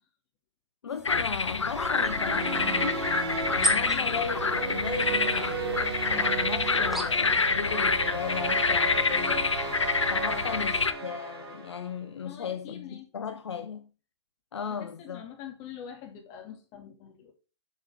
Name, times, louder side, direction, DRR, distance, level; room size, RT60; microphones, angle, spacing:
voice 1, 0.8-3.1 3.5-9.5 10.1-13.9 14.5-15.3, left 7 dB, 65° left, 1.0 m, -36 dB
sound 1, 0.9-7.4, equal, ahead, 1.1 m, -38 dB
sound 2, 1.0-10.9, left 4 dB, 90° left, 0.9 m, -27 dB
sound 3, 1.6-12.0, right 3 dB, 55° right, 3.8 m, -34 dB
voice 2, 12.2-13.1 14.7-17.3, left 9 dB, 30° left, 2.3 m, -45 dB
7.2 x 6.5 x 3.5 m
hypercardioid pair, 130°, 15 cm